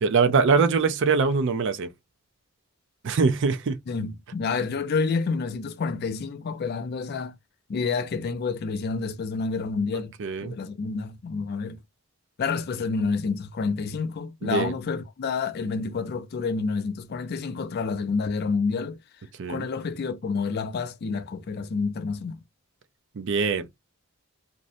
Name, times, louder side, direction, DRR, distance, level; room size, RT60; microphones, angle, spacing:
voice 1, 0.0-1.9 3.0-3.8 10.2-10.5 14.4-14.7 19.4-19.7 23.2-23.7, right 4 dB, 55° right, 0.4 m, -22 dB
voice 2, 3.9-7.3 7.7-10.1 10.4-11.8 12.4-19.0 19.5-22.4, left 4 dB, 45° left, 0.3 m, -29 dB
2.6 x 2.0 x 2.5 m
head